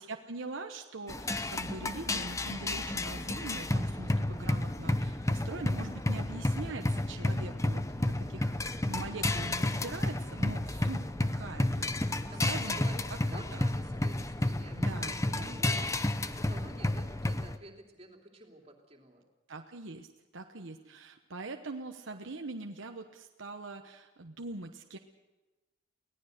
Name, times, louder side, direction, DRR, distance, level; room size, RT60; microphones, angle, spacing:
voice 1, 0.0-8.6 8.9-11.9 12.4-12.9 14.7-15.6 19.5-20.1 20.3-25.0, right 2 dB, 80° right, 4 dB, 1.1 m, -42 dB
sound 1, 1.1-17.6, left 1 dB, 15° left, 0.7 m, -31 dB
voice 2, 11.8-19.2 20.5-20.9, right 1 dB, 30° right, 1 dB, 3.0 m, -51 dB
24.5 x 17.5 x 6.7 m, 1.1 s
head